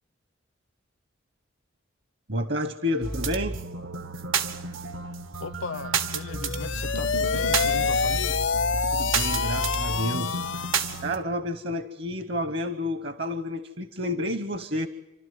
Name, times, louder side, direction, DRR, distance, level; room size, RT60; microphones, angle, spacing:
voice 1, 2.3-3.6 8.9-10.4 10.7-14.9, left 1 dB, 55° right, 1.0 m, -30 dB
sound 1, 3.0-11.2, right 4 dB, 85° right, 1.4 m, -30 dB
voice 2, 5.4-8.4, left 3 dB, 80° left, 1.0 m, -37 dB
sound 2, 6.3-11.1, left 6 dB, 65° left, 0.7 m, -27 dB
29.0 x 12.5 x 9.4 m
head